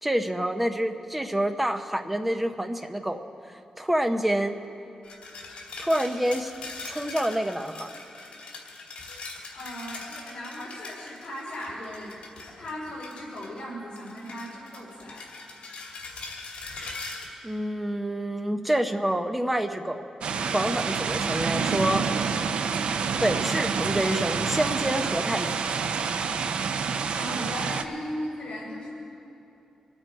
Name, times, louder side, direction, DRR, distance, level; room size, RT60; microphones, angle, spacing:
voice 1, 0.0-3.2 3.8-4.6 5.8-6.5 6.9-7.9 17.4-20.1 20.5-22.1 23.2-25.7, right 1 dB, 5° right, 6 dB, 0.7 m, -27 dB
sound 1, 5.0-13.6 14.0-17.2, left 3 dB, 70° left, 2.4 m, -41 dB
voice 2, 9.5-12.1 12.5-15.3 27.1-28.9, equal, 50° left, -11 dB, 4.1 m, -37 dB
sound 2, 20.2-27.8, right 6 dB, 65° right, 0.5 m, -28 dB
25.0 x 9.0 x 4.6 m, 2.9 s
wide cardioid pair, 170°, 2 cm